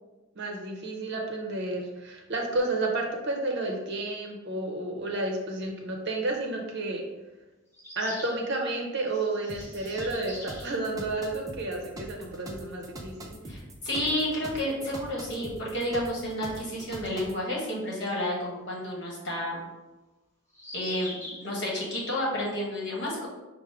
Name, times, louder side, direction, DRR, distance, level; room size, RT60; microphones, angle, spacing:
voice 1, 0.3-7.1 8.0-13.4, right 2 dB, 50° right, 1 dB, 0.7 m, -31 dB
sound 1, 7.7-8.4 9.1-10.8 12.0-12.1 12.3-12.4 14.8-14.9 18.0-18.1 20.5-21.5, left 1 dB, 15° left, 1.4 m, -43 dB
sound 2, 9.5-17.4, right 1 dB, 15° right, 0.4 m, -43 dB
voice 2, 13.4-19.6 20.7-23.3, left 1 dB, 50° left, -4 dB, 1.3 m, -31 dB
4.8 x 2.1 x 4.6 m, 1.1 s
head